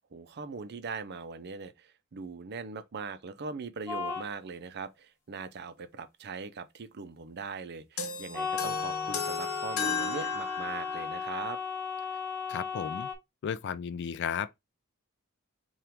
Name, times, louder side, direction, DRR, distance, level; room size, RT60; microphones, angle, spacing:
voice 1, 0.0-11.6, right 4 dB, 50° right, 0.5 m, -40 dB
sound 1, 3.9-4.3 8.3-13.1, left 6 dB, 15° left, 1.6 m, -35 dB
sound 2, 8.0-11.2, left 5 dB, 80° left, 1.0 m, -35 dB
voice 2, 12.5-13.1 13.4-14.5, left 7 dB, 55° left, 0.3 m, -34 dB
5.7 x 2.4 x 3.5 m
head